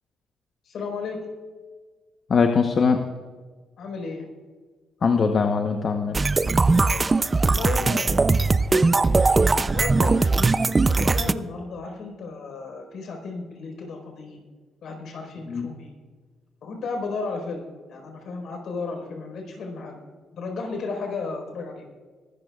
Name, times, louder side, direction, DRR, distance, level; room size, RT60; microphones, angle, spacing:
voice 1, 0.6-1.2 3.8-4.3 7.4-10.3 10.8-14.4 14.8-15.9 16.6-20.0 20.3-21.8, left 4 dB, 65° left, 2 dB, 4.5 m, -34 dB
voice 2, 2.3-3.0 5.0-6.2 15.5-15.7, left 5 dB, 45° left, 5 dB, 1.0 m, -21 dB
sound 1, 6.1-11.3, right 3 dB, 25° right, 0.5 m, -20 dB
23.0 x 13.0 x 2.4 m, 1.5 s
cardioid pair, 90°, 0 cm